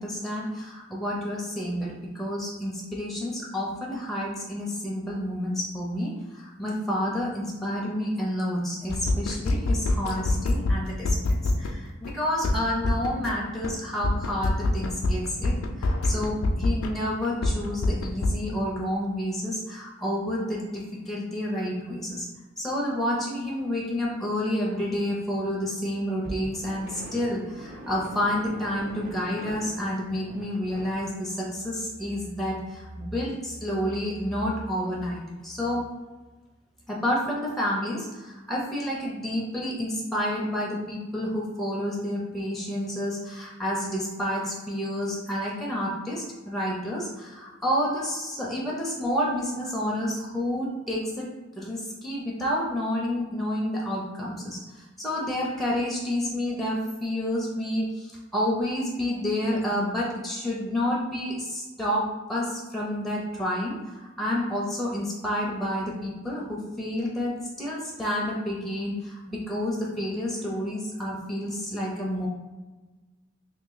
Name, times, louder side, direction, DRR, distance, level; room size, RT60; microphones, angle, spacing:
voice 1, 0.0-22.3 22.6-35.9 36.9-51.3 51.6-72.3, left 1 dB, ahead, -4 dB, 0.5 m, -29 dB
sound 1, 8.9-11.7 12.0-12.1 12.4-13.3 13.6-13.7 14.0-16.9 17.2-18.3, left 2 dB, 75° left, 0.4 m, -25 dB
sound 2, 26.2-31.0, equal, 50° right, 0.7 m, -42 dB
2.9 x 2.6 x 3.8 m, 1.2 s
head